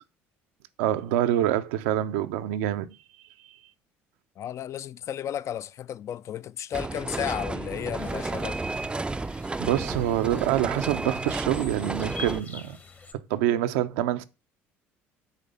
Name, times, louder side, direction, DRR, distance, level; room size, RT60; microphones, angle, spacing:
voice 1, 0.8-3.0 3.4-3.5 9.6-12.8 13.1-14.2, right 12 dB, 80° right, 0.5 m, -26 dB
voice 2, 4.4-8.6, left 10 dB, 50° left, 0.4 m, -33 dB
sound 1, 6.7-12.4, right 3 dB, 15° right, 0.4 m, -32 dB
sound 2, 8.0-13.1, left 4 dB, 30° left, 1.0 m, -46 dB
9.0 x 3.3 x 5.5 m
hypercardioid pair, 65°, 7 cm